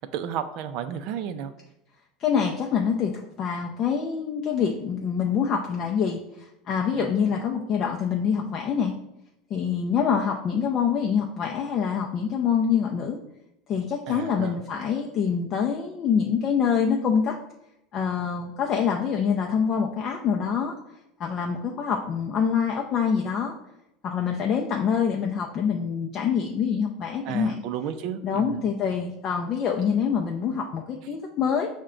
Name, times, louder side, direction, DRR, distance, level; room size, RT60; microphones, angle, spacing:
voice 1, 0.0-1.5 6.9-7.1 14.1-14.6 27.2-28.7, right 9 dB, 55° right, 10 dB, 0.4 m, -32 dB
voice 2, 2.2-8.9 9.5-13.2 13.7-17.4 17.9-20.8 21.2-23.5 24.0-27.6 28.2-31.7, left 7 dB, 35° left, 1 dB, 0.4 m, -25 dB
5.7 x 2.1 x 3.7 m, 0.85 s
supercardioid pair, 145°, 0 cm